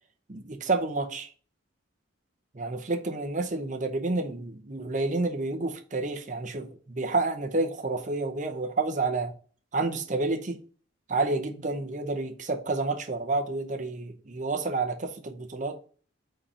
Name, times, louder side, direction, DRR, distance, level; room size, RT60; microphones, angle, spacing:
voice 1, 0.3-1.3 2.5-9.3 9.7-10.6 11.1-15.8, right 3 dB, 40° right, 0.8 m, -29 dB
4.7 x 4.3 x 5.0 m
head